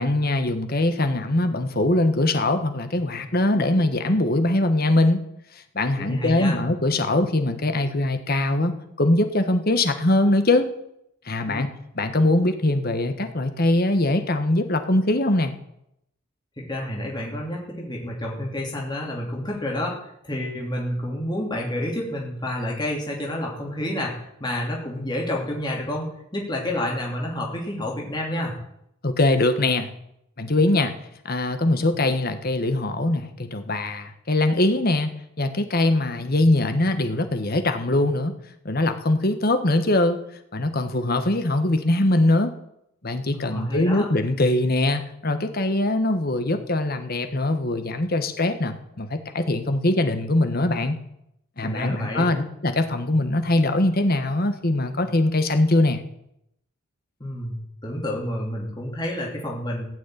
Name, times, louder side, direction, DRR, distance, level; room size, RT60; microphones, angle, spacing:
voice 1, 0.0-5.2 5.5-10.7 11.2-11.7 11.9-15.5 29.0-29.9 30.4-30.9 31.2-35.1 35.4-38.3 38.6-40.2 40.5-42.5 43.0-51.0 51.6-56.0, left 2 dB, 45° left, 8 dB, 1.3 m, -22 dB
voice 2, 6.0-6.6 11.4-11.6 16.6-28.5 43.4-44.0 51.6-52.2 57.2-59.8, left 1 dB, 20° left, -2 dB, 3.0 m, -29 dB
16.0 x 6.4 x 9.1 m, 0.79 s
head